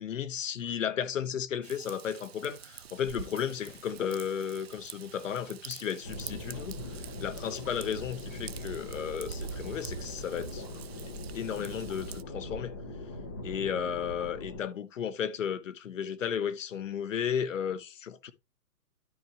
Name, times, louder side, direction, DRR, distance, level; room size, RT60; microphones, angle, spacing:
voice 1, 0.0-6.8 7.2-10.6 11.3-12.8 13.4-18.3, left 8 dB, 55° left, 1.1 m, -34 dB
Raindrop / Vehicle horn car horn honking / Trickle dribble, 1.6-12.2, right 8 dB, 45° right, 0.5 m, -47 dB
sound 1, 6.0-14.6, left 1 dB, 10° left, 0.5 m, -41 dB
12.0 x 4.6 x 2.9 m
hypercardioid pair, 145°, 48 cm